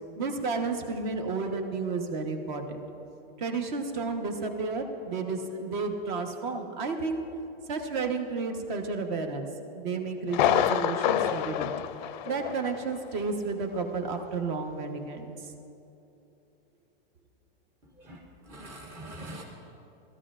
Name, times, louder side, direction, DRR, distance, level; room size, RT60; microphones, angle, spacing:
voice 1, 0.2-2.8 3.4-7.3 7.7-9.4 9.7-11.7 12.3-15.3, right 4 dB, 50° right, 5 dB, 1.2 m, -32 dB
Thunder, 10.3-12.9 13.2-13.3 13.8-13.9, left 10 dB, 50° left, 0.4 m, -27 dB
voice 2, 18.0-19.4, right 1 dB, 10° right, -1 dB, 0.5 m, -43 dB
17.5 x 13.5 x 2.5 m, 2.8 s
supercardioid pair, 165°, 30 cm